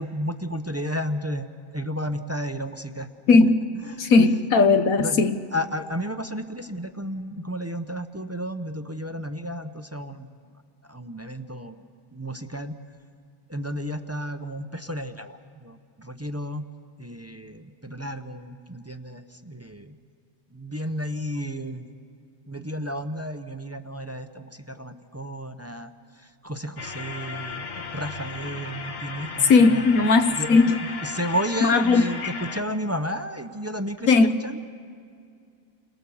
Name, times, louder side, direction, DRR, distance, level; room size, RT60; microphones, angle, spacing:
voice 1, 0.0-3.1 3.8-4.1 5.0-5.2 5.5-10.3 10.8-11.8 12.1-12.7 13.5-16.7 17.0-19.9 20.5-21.8 22.5-29.9 30.3-30.8 31.0-34.6, equal, 15° right, 8 dB, 0.5 m, -32 dB
voice 2, 3.3-3.6 4.0-5.4 29.5-30.7 31.7-32.3 34.1-34.4, left 4 dB, 75° left, 8 dB, 1.4 m, -18 dB
sound 1, 26.8-32.6, left 4 dB, 60° left, 1.7 m, -36 dB
29.5 x 23.0 x 7.1 m, 2.4 s
omnidirectional pair, 1.5 m